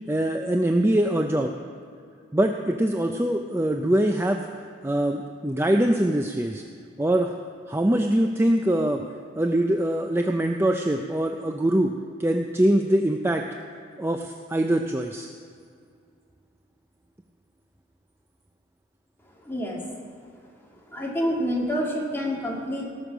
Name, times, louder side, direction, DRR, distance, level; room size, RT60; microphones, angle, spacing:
voice 1, 0.1-1.5 2.3-4.4 4.8-6.6 7.0-7.3 7.7-9.0 9.4-11.9 12.2-13.4 14.0-15.3, right 1 dB, 15° right, 4 dB, 0.4 m, -23 dB
voice 2, 19.4-19.8 20.9-22.8, equal, 10° left, -3 dB, 2.2 m, -27 dB
18.5 x 6.4 x 6.0 m, 2.3 s
head